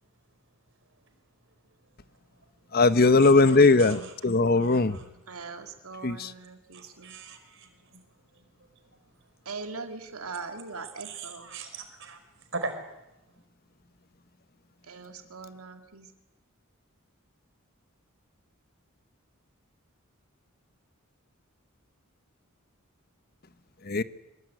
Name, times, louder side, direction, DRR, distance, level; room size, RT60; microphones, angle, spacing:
voice 1, 2.7-5.0 6.0-6.3 23.8-24.0, left 3 dB, 45° left, 13 dB, 0.9 m, -20 dB
voice 2, 3.6-4.1 4.5-5.0 6.7-8.0 11.0-12.2 12.5-12.7, right 4 dB, 60° right, 7 dB, 4.9 m, -40 dB
voice 3, 5.3-7.2 9.5-11.5 14.8-16.1, right 4 dB, 85° right, 6 dB, 2.3 m, -41 dB
25.0 x 22.5 x 9.3 m, 0.92 s
head